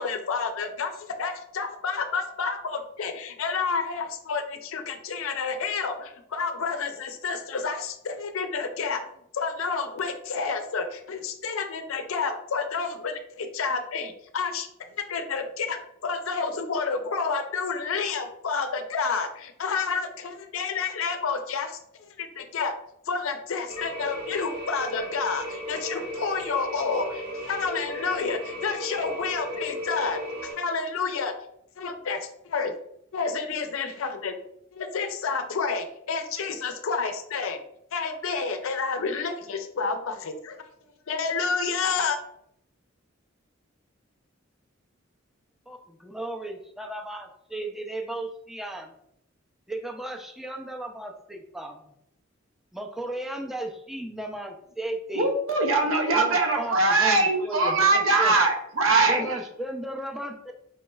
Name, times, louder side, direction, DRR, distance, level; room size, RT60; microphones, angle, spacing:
voice 1, 0.0-9.0 9.3-14.7 15.1-21.8 22.2-22.7 23.1-31.3 31.8-32.7 33.1-34.4 34.7-37.6 37.9-40.6 41.1-42.2, left 5 dB, 80° left, 0.5 m, -29 dB
sound 1, 23.7-30.5, equal, 45° right, 0.9 m, -35 dB
voice 2, 45.7-48.9 49.7-51.8 52.7-55.3 56.1-58.3 59.0-60.5, right 1 dB, ahead, 0.4 m, -35 dB
voice 3, 55.1-59.4, right 3 dB, 80° right, 0.7 m, -22 dB
4.6 x 3.0 x 2.3 m
head